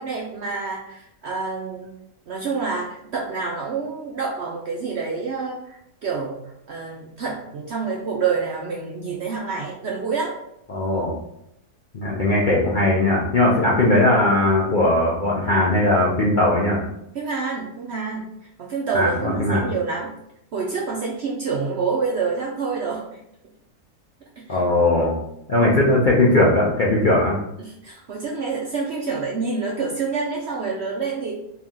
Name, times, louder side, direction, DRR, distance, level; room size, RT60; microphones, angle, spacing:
voice 1, 0.0-1.9 2.3-6.3 6.7-10.3 17.1-18.3 18.6-20.1 20.5-23.2 24.4-24.6 27.6-31.3, right 4 dB, 65° right, -2 dB, 0.7 m, -27 dB
voice 2, 10.7-11.1 11.9-16.8 18.9-19.7 24.5-25.1 25.5-27.4, left 1 dB, 50° left, -5 dB, 0.5 m, -19 dB
3.5 x 2.9 x 3.6 m, 0.79 s
omnidirectional pair, 1.6 m